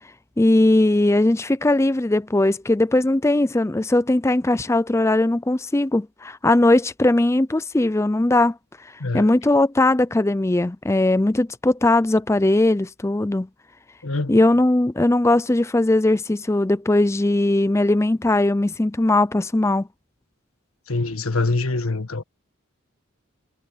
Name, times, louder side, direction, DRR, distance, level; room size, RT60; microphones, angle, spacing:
voice 1, 0.4-8.6 9.1-13.5 14.3-19.9, left 2 dB, 15° left, 0.4 m, -19 dB
voice 2, 14.0-14.4 20.9-22.2, left 3 dB, 85° left, 1.5 m, -24 dB
head